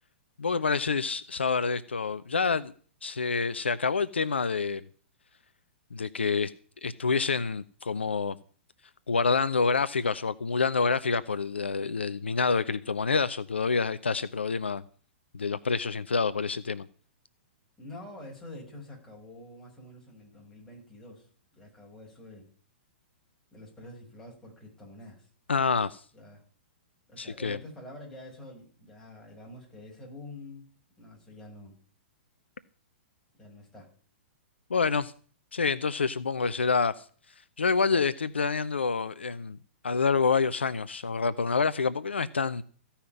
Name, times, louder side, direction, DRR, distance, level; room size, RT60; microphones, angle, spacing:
voice 1, 0.4-2.7 3.0-4.8 5.9-6.5 6.8-8.4 9.1-14.8 15.3-16.9 25.5-26.0 27.2-27.6 34.7-35.1 35.5-36.9 37.6-39.6 39.8-42.6, left 5 dB, 70° left, 0.6 m, -27 dB
voice 2, 17.8-22.5 23.5-25.3 26.1-26.4 27.1-30.7 31.0-31.8 33.4-33.9, left 1 dB, 5° left, 5.6 m, -47 dB
15.5 x 5.7 x 9.2 m
figure-of-eight pair, 110°, 6 cm